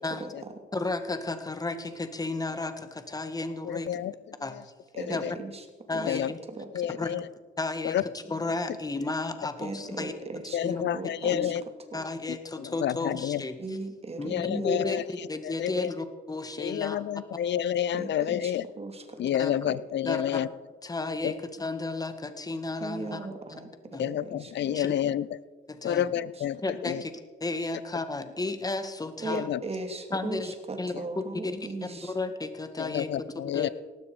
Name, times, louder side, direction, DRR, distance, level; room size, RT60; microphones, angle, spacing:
voice 1, 0.1-0.5 4.9-5.7 5.9-6.2 6.5-7.0 9.6-11.6 11.9-12.0 13.6-15.0 17.9-19.2 19.6-19.8 22.8-24.9 26.0-26.6 29.2-32.1, right 3 dB, 30° right, 6 dB, 2.7 m, -39 dB
voice 2, 0.7-3.9 4.4-4.6 5.1-5.2 5.9-6.4 7.0-7.1 7.6-10.1 10.6-10.8 11.3-11.5 11.9-13.6 14.2-17.1 19.4-19.6 20.0-20.4 20.8-23.3 23.9-24.1 24.7-24.9 25.7-26.1 26.6-29.4 30.1-30.5 30.8-33.7, left 2 dB, 20° left, 9 dB, 1.7 m, -33 dB
voice 3, 3.7-4.1 5.1-5.3 6.1-6.3 6.7-7.2 7.8-8.0 10.5-11.6 12.8-13.4 14.3-15.0 15.6-15.9 16.6-18.6 19.2-20.5 24.0-25.2 25.8-26.6 26.8-27.0 29.3-29.6 32.8-33.7, left 10 dB, 65° left, 19 dB, 0.7 m, -29 dB
18.0 x 13.0 x 5.0 m, 1.4 s
cardioid pair, 90°, 20 cm